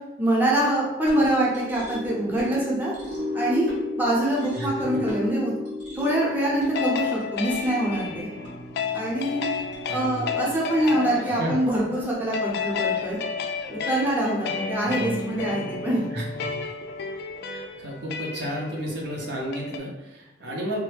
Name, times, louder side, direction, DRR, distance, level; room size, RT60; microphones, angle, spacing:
voice 1, 0.2-2.9 3.3-3.7 4.0-5.5 6.0-8.3 8.9-9.5 9.9-13.2 13.7-16.0, right 1 dB, 10° right, -6 dB, 0.7 m, -24 dB
sound 1, 1.0-13.4, left 2 dB, 85° right, 1.2 m, -36 dB
voice 2, 4.5-5.0 9.9-10.4 11.2-11.5 14.9-15.2 16.1-16.3 17.5-20.8, equal, 65° right, -2 dB, 0.6 m, -32 dB
sound 2, 6.1-19.8, left 6 dB, 60° left, 0.3 m, -32 dB
3.1 x 2.1 x 3.2 m, 1.0 s
head